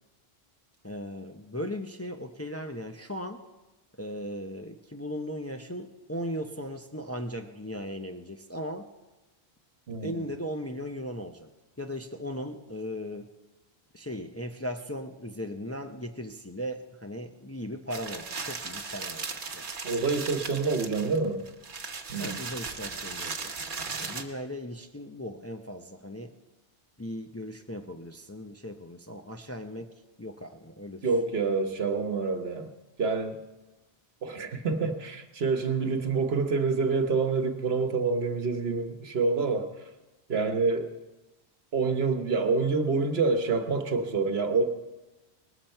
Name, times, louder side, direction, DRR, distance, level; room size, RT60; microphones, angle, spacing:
voice 1, 0.8-3.4 4.0-8.9 10.0-11.5 11.8-13.3 13.9-19.7 22.2-23.7 24.0-26.3 27.0-29.9 30.2-31.1, equal, 15° left, 5 dB, 0.6 m, -37 dB
voice 2, 9.9-10.2 19.8-21.4 22.1-22.4 31.0-32.7 33.0-33.4 34.2-39.7 40.3-40.9 41.7-44.6, right 4 dB, 70° right, 7 dB, 1.3 m, -27 dB
sound 1, 17.9-24.2, right 4 dB, 55° right, 1.2 m, -37 dB
19.5 x 13.5 x 4.5 m, 1.1 s
omnidirectional pair, 1.1 m